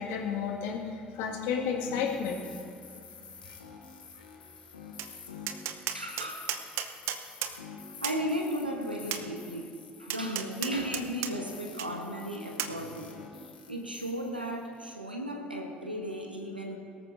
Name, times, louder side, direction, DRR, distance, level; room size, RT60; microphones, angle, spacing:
voice 1, 0.0-2.4 3.5-3.6, left 6 dB, 65° left, 1 dB, 1.9 m, -32 dB
sound 1, 1.8-14.9, left 5 dB, 80° left, 1.2 m, -48 dB
Tap, 5.0-5.1 5.5-7.5 8.0-8.2 9.1-9.2 10.1-11.3 11.8-11.9 12.6-12.7, right 11 dB, 60° right, 0.8 m, -33 dB
voice 2, 5.9-7.0 8.0-9.7 10.0-13.2 13.7-16.8, equal, 90° right, 3 dB, 1.1 m, -35 dB
22.5 x 14.0 x 2.6 m, 2.5 s
figure-of-eight pair, 50°, 5 cm